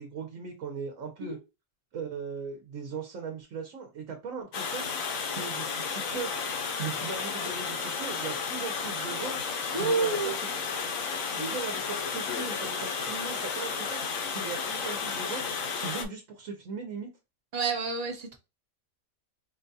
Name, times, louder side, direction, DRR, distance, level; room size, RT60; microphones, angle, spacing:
voice 1, 0.0-1.4 1.9-4.9 5.3-9.4 9.7-10.3 11.1-14.0 14.3-15.4 15.8-17.1, right 5 dB, 75° right, 1.2 m, -39 dB
Water, 4.5-16.0, left 5 dB, 80° left, 1.1 m, -33 dB
voice 2, 9.7-10.3 11.4-11.6 17.5-18.4, right 4 dB, 40° right, 0.7 m, -29 dB
4.4 x 2.3 x 2.7 m
omnidirectional pair, 1.4 m